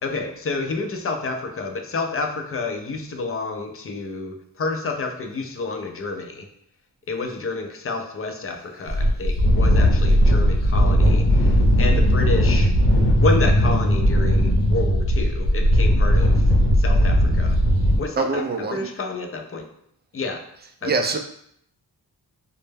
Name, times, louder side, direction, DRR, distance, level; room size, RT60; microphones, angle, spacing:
voice 1, 0.0-6.5 7.1-12.7 13.2-16.5 16.8-17.6 18.0-19.7 20.1-20.4 20.8-20.9, left 3 dB, 35° left, 4 dB, 0.4 m, -29 dB
sound 1, 8.9-18.0, equal, 60° left, 0.8 m, -17 dB
voice 2, 18.2-18.9 20.8-21.2, right 3 dB, 25° right, 4 dB, 0.3 m, -24 dB
2.1 x 2.1 x 3.2 m, 0.70 s
cardioid pair, 50°, 43 cm